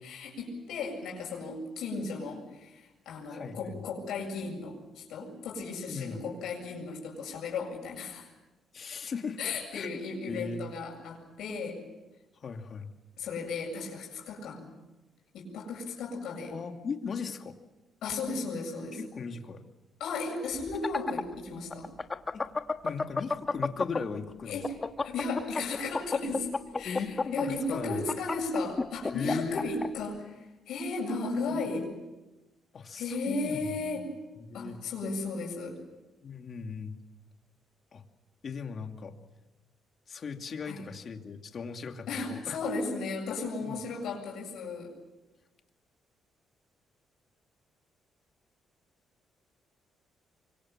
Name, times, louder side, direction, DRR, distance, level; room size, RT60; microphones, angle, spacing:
voice 1, 0.0-8.3 9.4-11.8 13.2-14.7 15.3-16.5 18.0-19.0 20.0-21.9 24.5-24.7 25.0-31.9 33.0-34.1 34.5-35.8 40.6-40.9 42.1-44.9, left 3 dB, 80° left, -1 dB, 7.8 m, -35 dB
voice 2, 3.3-3.8 5.9-6.2 8.7-10.6 12.4-12.9 16.5-17.6 18.9-19.6 22.3-22.4 22.8-24.6 26.8-28.1 29.1-29.6 31.5-31.6 32.7-34.0 34.4-34.8 36.2-36.9 37.9-38.0 38.4-39.1 40.1-42.6 43.6-43.8, left 5 dB, 50° left, 5 dB, 2.5 m, -38 dB
sound 1, 20.6-24.2 24.5-29.9, left 3 dB, 30° left, 1.3 m, -30 dB
25.5 x 24.0 x 7.5 m, 1.1 s
cardioid pair, 90°, 0 cm